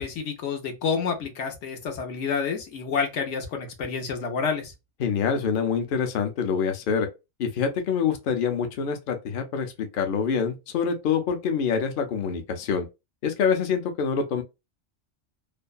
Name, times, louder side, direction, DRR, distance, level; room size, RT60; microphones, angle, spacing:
voice 1, 0.0-4.7, left 5 dB, 80° left, 1.0 m, -29 dB
voice 2, 5.0-7.1 7.4-12.9 13.2-14.4, left 6 dB, 55° left, 0.7 m, -26 dB
2.6 x 2.1 x 2.3 m
omnidirectional pair, 1.2 m